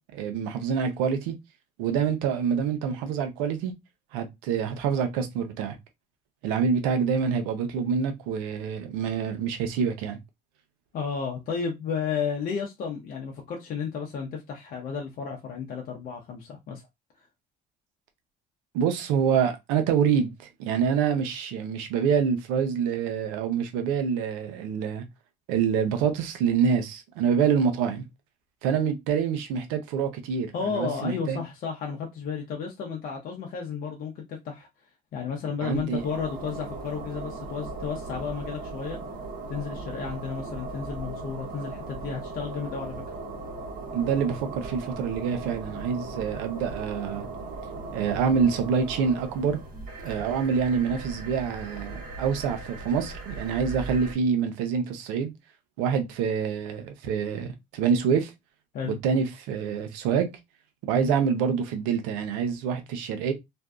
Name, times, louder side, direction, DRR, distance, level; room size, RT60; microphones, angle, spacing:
voice 1, 0.1-1.3 1.8-3.7 4.1-5.8 6.4-10.2 18.7-25.0 25.5-28.0 28.6-31.4 35.6-36.0 43.9-47.3 47.9-49.6 50.0-55.3 55.8-58.3 59.0-60.3 60.9-63.3, right 6 dB, 85° right, 0.6 m, -26 dB
voice 2, 10.9-16.8 30.5-34.7 35.1-39.0 39.5-43.0 58.7-59.0 60.9-61.1, left 6 dB, 55° left, 0.7 m, -33 dB
sound 1, 35.7-54.2, right 3 dB, 50° right, 1.0 m, -38 dB
2.6 x 2.3 x 2.3 m
supercardioid pair, 75°, 18 cm